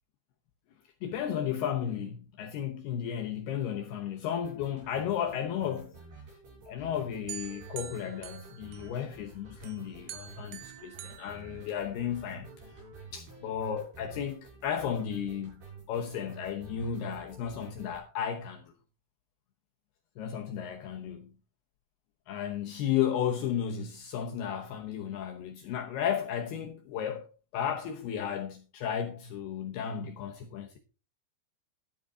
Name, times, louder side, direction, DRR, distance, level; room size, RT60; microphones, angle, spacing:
voice 1, 1.0-6.0 6.7-12.7 13.1-18.7 20.2-21.3 22.3-30.8, left 9 dB, 85° left, 2.2 m, -34 dB
sound 1, 4.4-18.0, right 4 dB, 50° right, 7.7 m, -50 dB
sound 2, 7.3-9.2 9.6-12.2, right 12 dB, 85° right, 3.9 m, -46 dB
12.5 x 10.0 x 3.7 m
omnidirectional pair, 6.0 m